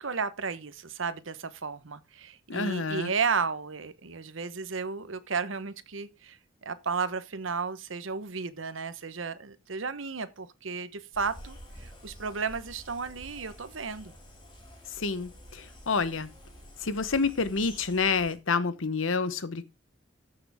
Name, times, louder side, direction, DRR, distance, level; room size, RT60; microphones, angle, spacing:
voice 1, 0.0-14.1, right 5 dB, 75° right, 1.1 m, -33 dB
voice 2, 2.5-3.1 15.0-16.3 16.8-19.6, left 4 dB, 80° left, 1.0 m, -28 dB
sound 1, 11.1-18.4, equal, 25° left, 4.2 m, -49 dB
14.5 x 6.7 x 3.6 m
head